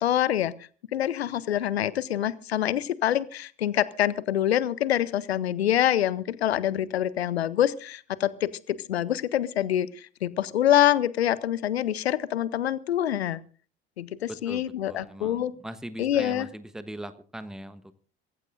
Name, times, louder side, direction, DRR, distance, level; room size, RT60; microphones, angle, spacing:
voice 1, 0.0-0.5 0.9-13.4 14.0-15.5 16.0-16.5, left 11 dB, 80° left, 20 dB, 0.7 m, -26 dB
voice 2, 14.3-17.9, right 1 dB, ahead, 12 dB, 1.1 m, -40 dB
26.0 x 15.0 x 2.5 m, 0.39 s
figure-of-eight pair, 55°, 31 cm